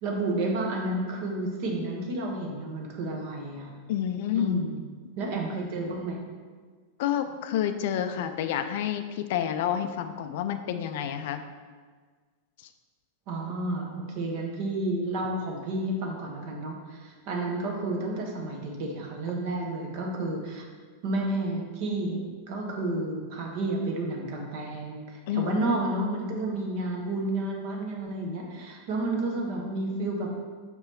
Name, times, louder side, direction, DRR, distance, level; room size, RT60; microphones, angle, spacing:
voice 1, 0.0-3.7 4.3-4.8 5.2-6.2 13.3-20.7 21.0-30.3, right 2 dB, 45° right, 0 dB, 1.2 m, -31 dB
voice 2, 3.9-4.6 7.0-11.4 25.3-25.6, left 9 dB, 50° left, 9 dB, 0.4 m, -29 dB
5.6 x 4.7 x 4.3 m, 1.5 s
figure-of-eight pair, 90°, 0 cm